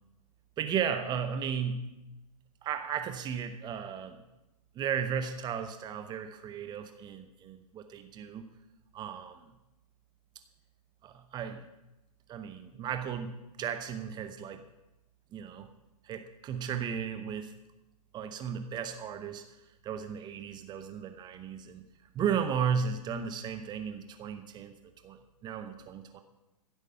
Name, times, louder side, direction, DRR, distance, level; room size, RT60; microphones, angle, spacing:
voice 1, 0.6-1.8 2.6-4.2 4.7-8.5 8.9-9.4 11.0-11.6 12.3-13.3 13.6-14.6 15.3-15.7 16.0-17.5 18.1-19.4 19.8-21.9 22.1-24.8 25.0-26.2, right 7 dB, 20° right, 8 dB, 0.9 m, -35 dB
15.0 x 8.1 x 5.7 m, 0.96 s
hypercardioid pair, 120°, 20 cm